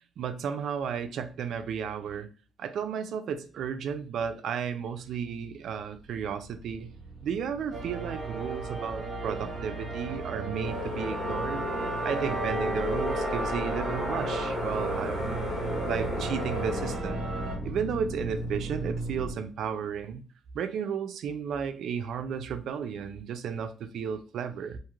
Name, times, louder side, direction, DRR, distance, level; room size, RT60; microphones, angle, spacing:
voice 1, 0.2-2.3 2.6-6.9 7.2-11.6 12.0-15.4 15.8-17.3 17.6-20.2 20.5-24.8, right 7 dB, 70° right, 0.3 m, -33 dB
sound 1, 5.5-19.3, right 1 dB, 15° right, 1.1 m, -38 dB
sound 2, 7.7-17.6, right 3 dB, 45° right, 0.8 m, -35 dB
sound 3, 10.6-17.0, left 2 dB, 85° left, 1.3 m, -34 dB
2.5 x 2.4 x 3.0 m
cardioid pair, 145°, 0 cm